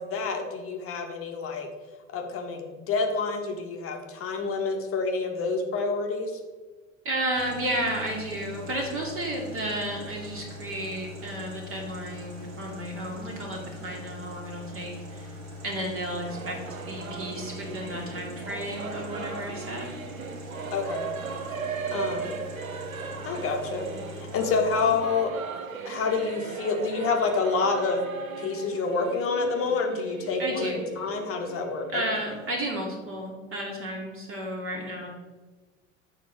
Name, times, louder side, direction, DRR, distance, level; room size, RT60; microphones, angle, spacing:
voice 1, 0.0-1.7 2.1-6.3 20.7-21.1 21.9-22.4 23.2-23.9 24.2-25.3 25.8-28.1 28.4-32.2, left 4 dB, 35° left, 3 dB, 1.2 m, -28 dB
voice 2, 7.0-15.3 15.6-16.6 16.9-19.9 30.4-30.8 31.9-35.1, right 1 dB, 30° right, -1 dB, 1.9 m, -32 dB
sound 1, 7.3-25.0, left 2 dB, 60° right, 2.1 m, -42 dB
Singing / Musical instrument, 16.3-32.6, right 5 dB, 85° right, 0.6 m, -38 dB
7.2 x 3.9 x 6.2 m, 1.3 s
figure-of-eight pair, 75°, 40 cm